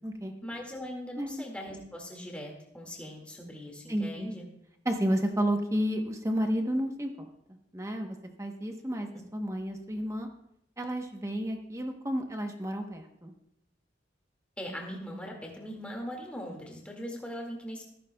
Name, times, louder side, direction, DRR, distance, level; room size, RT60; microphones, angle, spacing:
voice 1, 0.4-4.4 14.6-17.8, equal, 5° left, -1 dB, 2.1 m, -40 dB
voice 2, 3.9-4.3 4.8-7.1 7.7-10.3 10.8-13.3, equal, 15° right, 4 dB, 1.0 m, -31 dB
14.5 x 14.0 x 2.3 m, 0.78 s
head